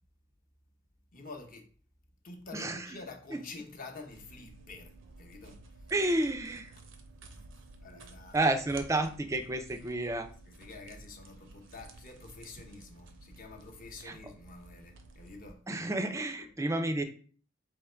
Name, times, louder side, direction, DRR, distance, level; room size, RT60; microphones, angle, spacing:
voice 1, 1.1-1.7 2.2-5.6 5.9-6.0 6.8-6.9 7.8-8.5 10.4-15.6 16.1-16.5, left 3 dB, 45° left, 0.8 m, -48 dB
voice 2, 2.5-3.0 3.3-3.4 5.9-6.7 8.3-10.3 14.0-14.2 15.7-17.0, right 2 dB, 15° right, 0.4 m, -30 dB
sound 1, 4.1-15.5, right 2 dB, 65° right, 0.6 m, -53 dB
3.5 x 2.9 x 4.4 m
head